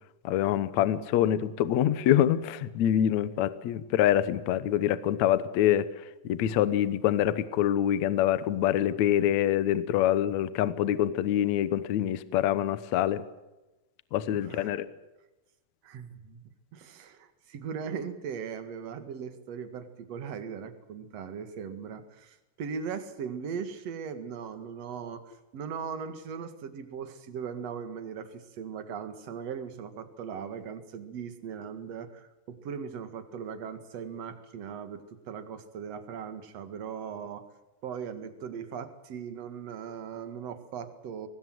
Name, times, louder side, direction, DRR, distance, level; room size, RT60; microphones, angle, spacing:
voice 1, 0.2-5.9 6.2-13.2 14.1-14.9, left 11 dB, 65° left, 15 dB, 2.0 m, -25 dB
voice 2, 14.3-14.8 15.8-16.4 16.7-37.5 37.8-41.3, right 7 dB, 50° right, 9 dB, 2.7 m, -39 dB
24.0 x 19.5 x 7.8 m, 1.0 s
omnidirectional pair, 4.0 m